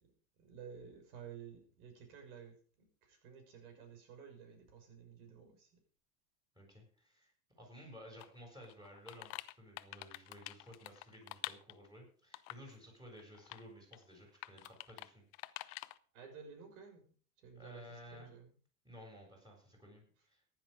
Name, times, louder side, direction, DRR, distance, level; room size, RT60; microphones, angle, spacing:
voice 1, 0.4-5.7 16.1-18.5, right 7 dB, 65° right, 5 dB, 6.5 m, -53 dB
voice 2, 6.6-7.3 7.6-9.3 9.6-15.2 17.6-18.3 18.8-20.4, equal, 10° right, 1 dB, 7.6 m, -55 dB
sound 1, 8.2-8.3 8.6-11.9 12.3-12.7 13.2-13.6 13.9-14.0 14.4-15.1 15.3-16.0, left 20 dB, 45° left, 0.9 m, -47 dB
15.5 x 10.5 x 5.2 m, 0.42 s
hypercardioid pair, 100°, 47 cm